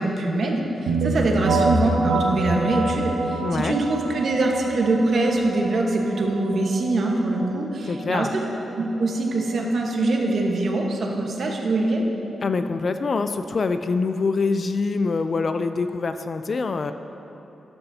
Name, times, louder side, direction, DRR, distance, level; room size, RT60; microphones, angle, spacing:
voice 1, 0.0-8.4 8.8-12.1, right 2 dB, 50° right, 0 dB, 1.1 m, -23 dB
sound 1, 0.9-10.4, right 2 dB, 80° right, 1.0 m, -27 dB
voice 2, 3.4-3.8 7.9-8.3 12.4-16.9, left 4 dB, 35° left, 9 dB, 0.3 m, -25 dB
13.5 x 11.0 x 2.7 m, 3.0 s
wide cardioid pair, 180°, 0 cm